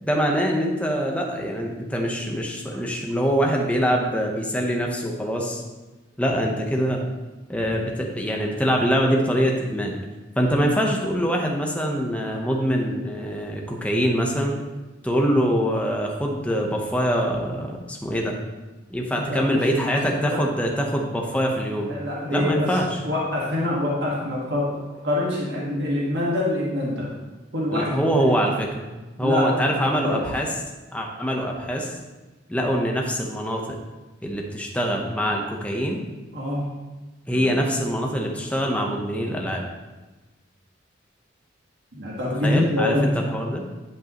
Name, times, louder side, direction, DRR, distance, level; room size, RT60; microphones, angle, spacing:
voice 1, 0.0-5.6 6.2-7.0 7.5-10.0 10.4-14.5 15.0-18.3 18.9-22.0 22.3-23.0 27.7-28.9 29.2-30.5 30.9-32.0 32.5-33.6 34.2-36.0 37.3-39.6 42.4-43.6, equal, 5° left, 0 dB, 0.9 m, -24 dB
voice 2, 19.3-19.9 20.2-20.4 21.9-22.8 23.0-27.1 27.5-28.0 29.2-29.5 29.8-30.2 32.6-32.8 36.3-36.6 41.9-43.1, left 1 dB, 60° right, -5 dB, 1.7 m, -25 dB
11.0 x 5.4 x 3.0 m, 1.2 s
head